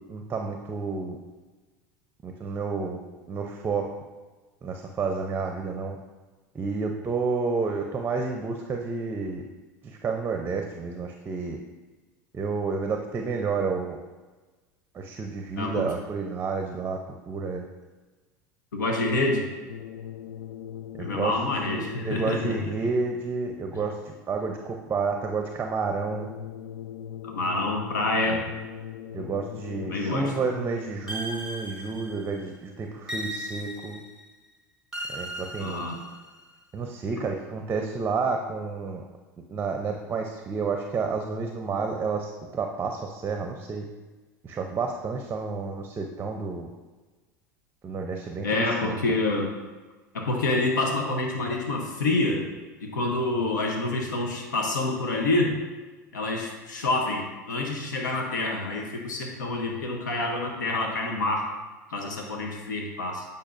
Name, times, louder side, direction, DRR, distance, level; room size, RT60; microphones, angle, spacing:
voice 1, 0.1-1.2 2.2-3.0 3.3-4.0 4.6-6.0 6.5-9.4 10.0-11.6 12.3-14.0 14.9-17.7 21.0-26.3 28.3-28.4 29.1-34.0 35.1-35.8 36.7-39.0 39.5-43.8 44.4-46.7 47.8-49.0, right 4 dB, 25° right, 3 dB, 0.6 m, -30 dB
voice 2, 18.7-19.5 21.0-22.7 27.3-28.4 29.9-30.3 35.6-36.0 48.4-49.5 50.1-52.4 52.8-55.5 56.1-61.5 61.9-63.2, left 2 dB, 90° left, 1 dB, 0.9 m, -27 dB
sound 1, 19.7-23.1 26.1-31.1, left 9 dB, 75° left, 0.4 m, -40 dB
sound 2, 31.1-32.4 33.1-34.2 34.9-36.4, right 1 dB, 10° right, 1.2 m, -37 dB
8.6 x 5.3 x 2.6 m, 1.3 s
hypercardioid pair, 90°, 10 cm